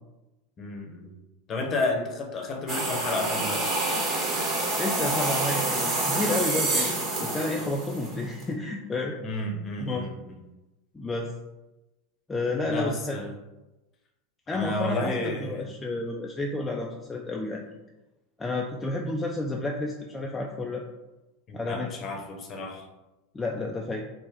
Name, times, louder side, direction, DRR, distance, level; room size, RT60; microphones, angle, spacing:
voice 1, 0.6-1.1 1.5-3.6 9.2-10.4 12.7-13.3 14.5-15.7 21.5-22.8, left 2 dB, 35° left, 2 dB, 0.7 m, -31 dB
pouring sugar, 2.7-8.4, right 2 dB, 40° right, 1.0 m, -27 dB
voice 2, 4.7-6.9 7.2-9.2 9.8-10.0 10.9-11.3 12.3-13.2 14.5-17.7 18.4-20.8 21.5-21.9 23.3-24.0, left 2 dB, 15° left, 0 dB, 0.3 m, -31 dB
3.3 x 2.1 x 3.5 m, 1.0 s
hypercardioid pair, 85°, 0 cm